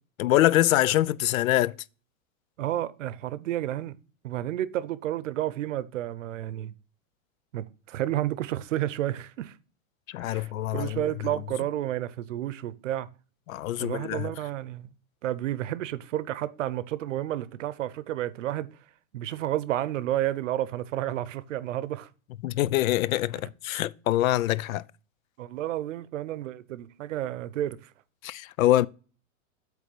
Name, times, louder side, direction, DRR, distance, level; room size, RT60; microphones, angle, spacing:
voice 1, 0.2-1.7 10.1-11.0 13.5-14.3 22.4-24.8 28.2-28.9, left 14 dB, 85° left, 0.5 m, -24 dB
voice 2, 2.6-4.0 4.2-6.7 7.5-9.6 10.2-13.1 13.8-14.9 15.2-18.7 19.1-22.1 25.4-27.9, right 13 dB, 65° right, 0.8 m, -31 dB
8.5 x 3.4 x 6.6 m
supercardioid pair, 175°, 40 cm